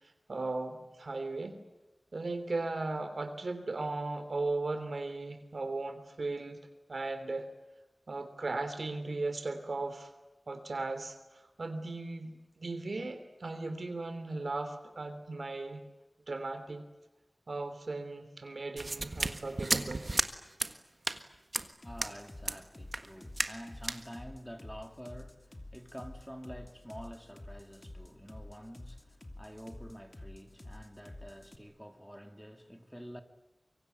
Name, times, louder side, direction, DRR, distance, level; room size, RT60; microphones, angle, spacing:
voice 1, 0.3-1.6 2.1-6.6 6.9-7.5 8.1-10.1 10.5-15.8 16.3-16.8 17.5-20.0, right 3 dB, 75° right, 3.2 m, -37 dB
sound 1, 18.8-20.3 20.6-20.7 21.0-21.2 21.5-21.7 22.0-22.1 22.4-22.6 22.9-23.1 23.4-23.6 23.8-24.0, right 2 dB, 55° right, 1.5 m, -33 dB
sound 2, 21.6-31.6, left 1 dB, 35° left, 2.9 m, -49 dB
voice 2, 21.8-33.2, equal, ahead, 2.6 m, -48 dB
24.5 x 24.0 x 9.4 m
wide cardioid pair, 55°, 0 cm